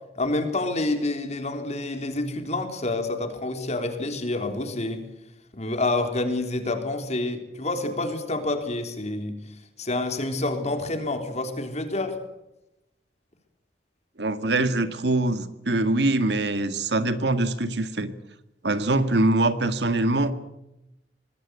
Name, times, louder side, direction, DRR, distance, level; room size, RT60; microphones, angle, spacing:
voice 1, 0.2-5.0 5.5-9.4 9.8-12.2, left 2 dB, 40° left, 6 dB, 3.7 m, -28 dB
voice 2, 14.2-18.1 18.6-20.3, right 2 dB, 70° right, 11 dB, 1.9 m, -23 dB
25.0 x 20.0 x 8.2 m, 0.88 s
head